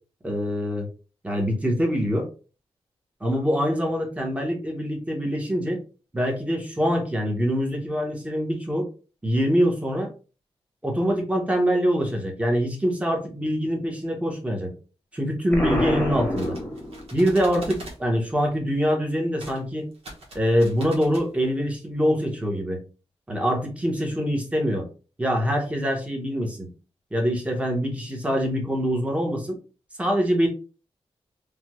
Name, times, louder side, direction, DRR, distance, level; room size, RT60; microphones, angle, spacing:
voice 1, 0.2-0.9 1.2-2.3 3.2-5.8 6.1-8.9 9.2-10.1 10.8-14.7 15.1-16.6 17.1-19.9 20.3-22.8 23.3-24.8 25.2-26.7 27.1-29.6 30.0-30.5, equal, 10° right, 1 dB, 1.0 m, -24 dB
Explosion, 15.5-17.3, equal, 10° left, 1.0 m, -27 dB
sound 1, 16.1-18.0 19.4-19.6 19.9-21.3, right 1 dB, 70° right, 1.1 m, -42 dB
3.3 x 2.2 x 3.0 m, 0.35 s
wide cardioid pair, 110°, 11 cm